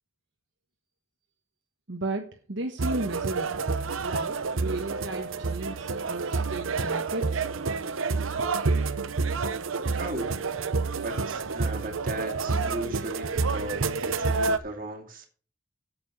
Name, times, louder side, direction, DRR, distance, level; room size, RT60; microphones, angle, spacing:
voice 1, 1.9-7.4, right 2 dB, 65° right, 3 dB, 1.3 m, -35 dB
sound 1, 2.8-14.6, right 4 dB, 90° right, 0.8 m, -28 dB
voice 2, 9.9-10.4 11.0-15.3, right 2 dB, 45° right, 3 dB, 2.4 m, -36 dB
8.8 x 7.8 x 6.8 m, 0.41 s
head